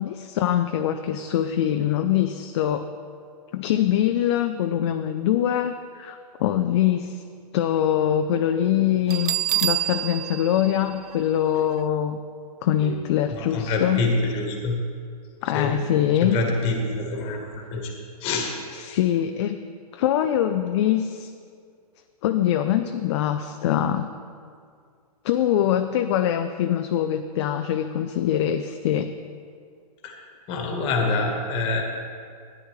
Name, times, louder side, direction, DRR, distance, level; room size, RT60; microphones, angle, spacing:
voice 1, 0.0-2.9 3.5-7.2 7.5-9.4 9.6-12.2 12.6-14.1 15.4-16.4 18.7-19.6 19.9-21.3 22.2-24.1 25.2-29.1, left 11 dB, 45° left, 7 dB, 0.5 m, -23 dB
Bell, 9.1-11.8, right 13 dB, 75° right, 0.4 m, -28 dB
voice 2, 13.3-14.8 15.5-15.8 16.2-17.9 18.2-18.6 30.0-30.2 30.5-31.8, left 3 dB, 30° left, 2 dB, 1.5 m, -26 dB
13.5 x 9.9 x 3.2 m, 2.2 s
hypercardioid pair, 140°, 20 cm